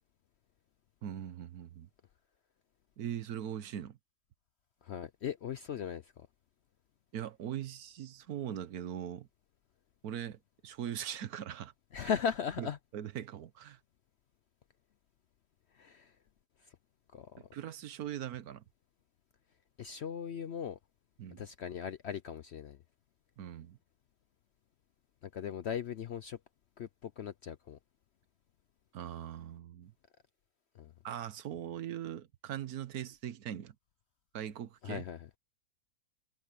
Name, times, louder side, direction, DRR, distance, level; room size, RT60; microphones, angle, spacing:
voice 1, 1.0-1.9 3.0-4.0 7.1-9.3 10.0-12.1 12.6-12.7 12.9-13.8 17.4-18.6 21.2-21.5 23.4-23.8 28.9-29.9 31.0-33.7 34.3-35.0, right 10 dB, 70° right, 1.3 m, -41 dB
voice 2, 4.8-6.3 11.9-12.8 15.7-16.1 16.6-16.7 17.1-17.5 19.8-20.8 21.4-22.8 25.2-26.4 26.8-27.8 30.7-30.9 34.8-35.3, left 7 dB, 60° left, 0.7 m, -38 dB
omnidirectional pair, 1.7 m